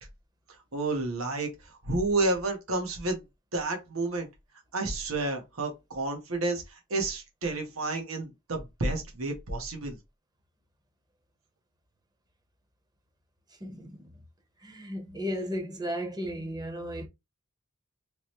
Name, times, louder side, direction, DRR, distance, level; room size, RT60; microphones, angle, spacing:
voice 1, 0.7-1.5 1.8-3.2 3.5-4.3 4.7-6.6 6.9-10.0, right 2 dB, 80° right, 1.3 m, -30 dB
voice 2, 13.6-14.1 14.6-17.1, equal, 20° right, 0.9 m, -35 dB
3.7 x 3.2 x 3.0 m
head